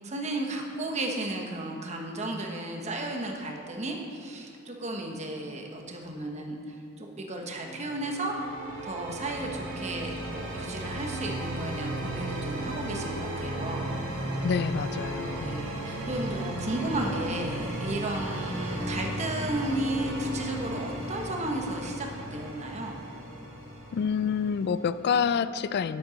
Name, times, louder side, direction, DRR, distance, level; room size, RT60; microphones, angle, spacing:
voice 1, 0.0-8.4 8.8-13.9 15.4-23.0, right 1 dB, 35° right, 1 dB, 1.1 m, -34 dB
sound 1, 7.6-25.3, right 1 dB, 75° right, 1.9 m, -35 dB
voice 2, 14.4-15.5 23.9-26.0, left 6 dB, 55° left, 15 dB, 0.3 m, -27 dB
8.3 x 8.0 x 5.1 m, 2.6 s
head